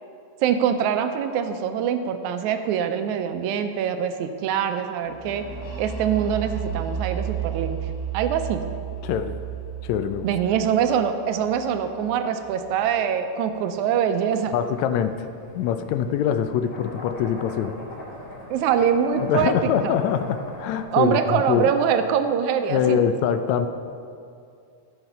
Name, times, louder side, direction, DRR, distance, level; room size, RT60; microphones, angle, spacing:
voice 1, 0.4-5.4 5.8-7.8 8.1-8.6 10.2-14.5 18.5-19.5 19.8-20.0 20.9-23.0, right 8 dB, 85° right, 8 dB, 2.0 m, -23 dB
sound 1, 5.0-12.7, right 8 dB, 55° left, 2.3 m, -33 dB
voice 2, 9.0-9.4 9.8-10.3 14.5-15.3 15.6-17.8 19.2-21.7 22.7-23.7, left 8 dB, 80° left, 9 dB, 1.8 m, -24 dB
sound 2, 14.4-20.8, left 1 dB, 40° left, 3.5 m, -42 dB
14.0 x 5.9 x 5.6 m, 2.4 s
omnidirectional pair, 3.4 m